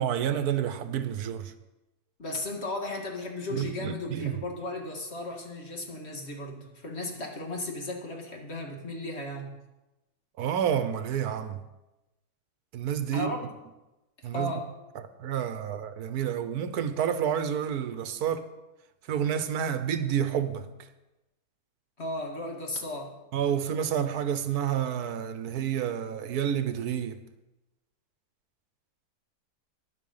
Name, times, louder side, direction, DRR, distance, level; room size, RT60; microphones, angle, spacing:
voice 1, 0.0-1.5 3.5-4.4 10.4-11.6 12.7-13.3 14.2-14.5 15.2-18.5 19.1-20.6 23.3-27.2, right 9 dB, 80° right, 1.3 m, -29 dB
voice 2, 2.2-9.6 13.1-13.4 14.3-14.7 22.0-23.1, left 1 dB, 45° left, 2.1 m, -35 dB
11.5 x 10.5 x 5.5 m
omnidirectional pair, 1.6 m